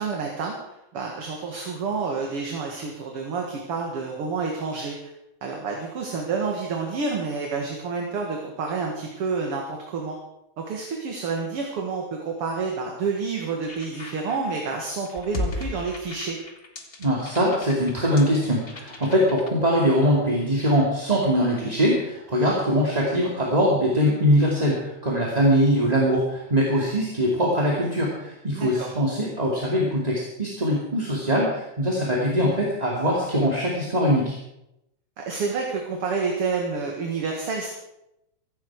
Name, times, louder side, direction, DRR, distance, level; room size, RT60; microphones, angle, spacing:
voice 1, 0.0-5.1 5.4-10.2 10.6-16.4 28.5-29.0 35.2-37.7, right 4 dB, 50° right, 0 dB, 2.6 m, -29 dB
sound 1, 13.7-19.5, left 2 dB, 35° left, 0.9 m, -36 dB
voice 2, 17.0-34.4, equal, 15° right, -3 dB, 2.1 m, -22 dB
16.0 x 15.0 x 4.8 m, 0.84 s
omnidirectional pair, 3.4 m